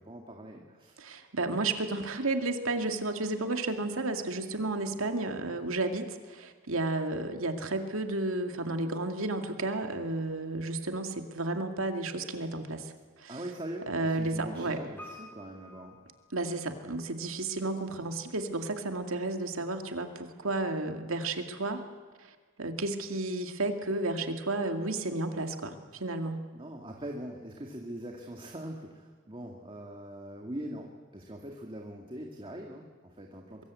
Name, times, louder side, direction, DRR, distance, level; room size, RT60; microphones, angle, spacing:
voice 1, 0.0-1.1 13.3-16.0 26.5-33.6, right 1 dB, 25° right, 1 dB, 2.1 m, -42 dB
voice 2, 1.0-12.9 13.2-13.4 13.9-14.8 16.3-21.8 22.6-26.4, right 2 dB, 75° right, 6 dB, 2.3 m, -32 dB
Piano, 15.0-17.0 17.3-17.4, left 2 dB, 10° left, 4.5 m, -50 dB
23.5 x 22.5 x 8.4 m, 1.4 s
head